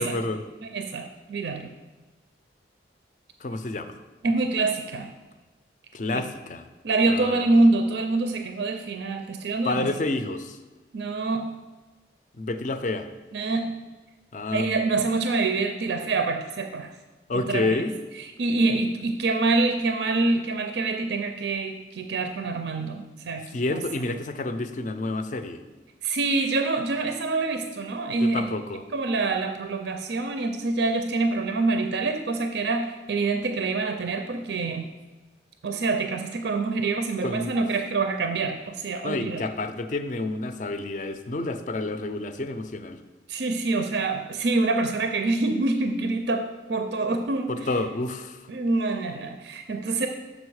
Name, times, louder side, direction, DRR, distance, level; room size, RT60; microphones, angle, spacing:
voice 1, 0.0-0.4 3.4-4.0 5.9-6.6 7.1-7.4 9.6-10.6 12.4-13.1 14.3-14.8 17.3-17.9 23.5-25.6 28.2-28.8 37.2-37.6 39.0-43.0 47.5-48.4, left 2 dB, 40° left, 9 dB, 0.4 m, -29 dB
voice 2, 0.6-1.7 4.2-5.1 6.1-6.3 6.8-9.9 10.9-11.6 13.3-13.8 14.5-16.9 17.3-17.9 18.2-24.0 26.0-28.6 28.9-34.9 35.6-39.5 43.3-47.7 48.5-50.1, right 3 dB, 70° right, 6 dB, 0.5 m, -26 dB
6.3 x 5.2 x 4.8 m, 1.2 s
head